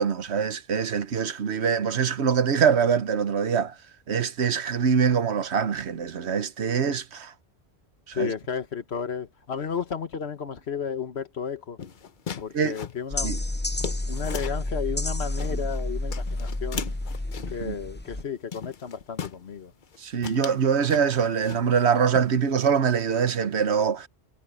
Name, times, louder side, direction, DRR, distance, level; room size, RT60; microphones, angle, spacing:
voice 1, 0.0-3.7 4.1-7.3 8.1-8.3 12.5-12.7 13.2-13.4 15.5-15.6 17.6-17.8 20.0-24.1, right 7 dB, 80° right, 1.3 m, -24 dB
voice 2, 8.1-11.8 12.4-13.3 13.8-16.9 17.5-19.7, left 7 dB, 70° left, 1.5 m, -33 dB
sound 1, 11.8-14.7 15.1-15.8 16.1-17.7 18.1-18.3 18.5-19.4 19.8-20.0 20.2-21.9 22.1-22.7, left 6 dB, 50° left, 0.9 m, -38 dB
sound 2, 13.1-18.2, left 2 dB, 10° left, 0.6 m, -30 dB
omnidirectional pair, 1.1 m